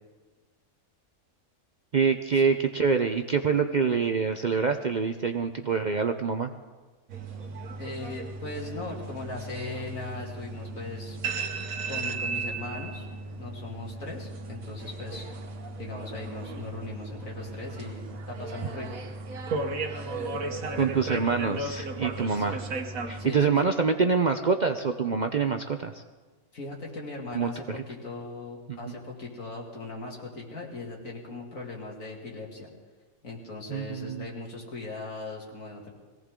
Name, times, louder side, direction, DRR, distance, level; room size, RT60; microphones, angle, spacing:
voice 1, 1.9-6.5 20.7-22.6 23.1-25.9 27.3-27.8 28.7-28.9 33.7-34.2, right 5 dB, 50° right, 6 dB, 0.5 m, -26 dB
sound 1, 7.1-23.3, right 3 dB, 80° right, 1.5 m, -36 dB
voice 2, 7.8-11.2 11.9-15.3 15.8-19.0 22.3-22.6 23.2-23.7 26.5-32.7 33.2-35.9, left 3 dB, 75° left, -2 dB, 3.0 m, -39 dB
22.0 x 16.5 x 3.7 m, 1.3 s
omnidirectional pair, 1.4 m